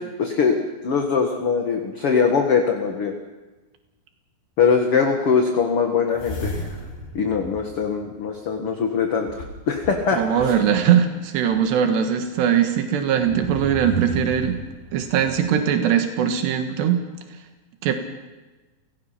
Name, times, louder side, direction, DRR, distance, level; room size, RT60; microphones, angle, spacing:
voice 1, 0.2-0.6 0.8-3.2 4.6-6.7 7.1-10.6, left 5 dB, 50° left, 3 dB, 1.8 m, -22 dB
sound 1, 6.1-8.6 9.3-10.9 11.5-11.6 13.1-15.6, equal, 65° left, 7.9 m, -35 dB
voice 2, 10.1-14.6 14.9-17.0 17.8-17.9, right 8 dB, 90° right, 5 dB, 3.7 m, -20 dB
29.5 x 18.5 x 5.9 m, 1.2 s
omnidirectional pair, 4.8 m